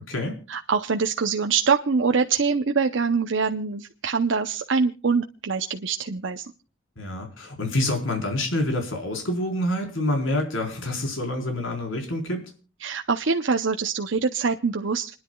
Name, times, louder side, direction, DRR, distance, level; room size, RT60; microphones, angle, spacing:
voice 1, 0.5-6.4 12.8-15.1, right 5 dB, 65° right, 5 dB, 0.7 m, -24 dB
voice 2, 7.0-12.5, left 1 dB, 75° left, 3 dB, 4.2 m, -27 dB
29.5 x 10.5 x 2.3 m, 0.35 s
head